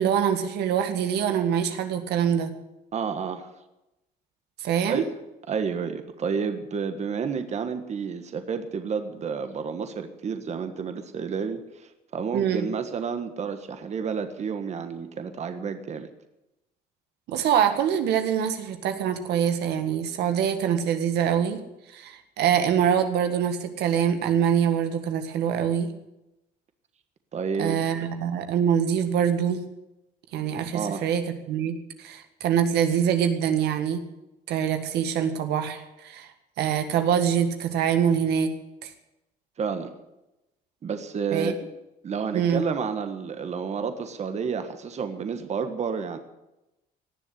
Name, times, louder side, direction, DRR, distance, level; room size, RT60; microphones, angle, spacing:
voice 1, 0.0-2.5 4.6-5.0 12.3-12.7 17.3-21.6 21.9-25.9 27.6-29.6 30.3-34.0 34.5-36.3 36.6-38.5 38.8-38.9 41.3-41.5 42.3-42.6, right 8 dB, 80° right, 7 dB, 1.7 m, -24 dB
voice 2, 2.9-3.5 4.8-5.0 5.5-16.1 27.3-27.8 30.7-31.0 39.6-39.9 40.8-41.5 42.0-46.2, right 6 dB, 40° right, 8 dB, 1.5 m, -30 dB
18.5 x 7.3 x 9.9 m, 0.93 s
cardioid pair, 110°, 17 cm